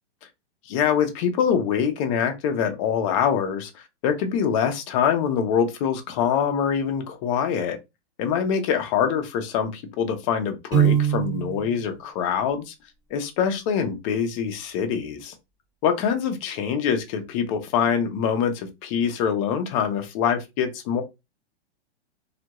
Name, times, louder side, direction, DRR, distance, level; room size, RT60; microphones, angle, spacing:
voice 1, 0.7-7.8 8.2-12.7 13.1-15.3 15.8-21.0, left 7 dB, 30° left, 0.5 m, -24 dB
Piano, 10.7-11.7, right 9 dB, 30° right, 1.2 m, -21 dB
2.2 x 2.1 x 2.8 m
hypercardioid pair, 145°, 33 cm